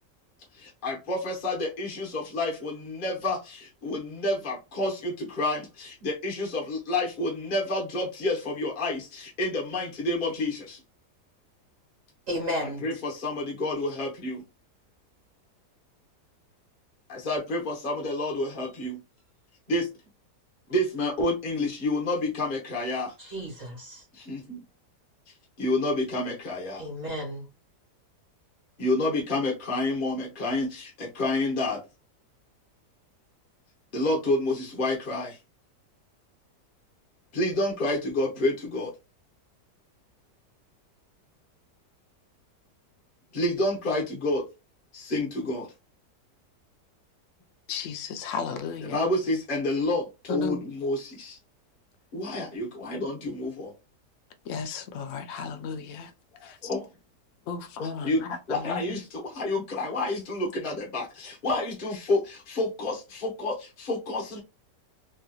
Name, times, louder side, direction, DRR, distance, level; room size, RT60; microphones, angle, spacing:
voice 1, 0.5-10.8 12.6-14.4 17.1-19.0 19.7-19.9 20.7-23.1 24.1-24.6 25.6-26.9 28.8-31.8 33.9-35.4 37.3-38.9 43.3-44.4 44.9-45.7 48.8-51.4 52.1-53.7 56.4-56.9 57.8-64.4, left 2 dB, 40° left, 0.9 m, -29 dB
voice 2, 12.3-12.8 23.2-24.0 26.8-27.4, equal, 50° right, 1.7 m, -33 dB
voice 3, 47.7-49.0 50.3-50.6 54.5-56.1 57.5-58.1 58.7-58.8, left 6 dB, 75° left, 0.7 m, -34 dB
3.3 x 2.7 x 2.2 m
omnidirectional pair, 1.8 m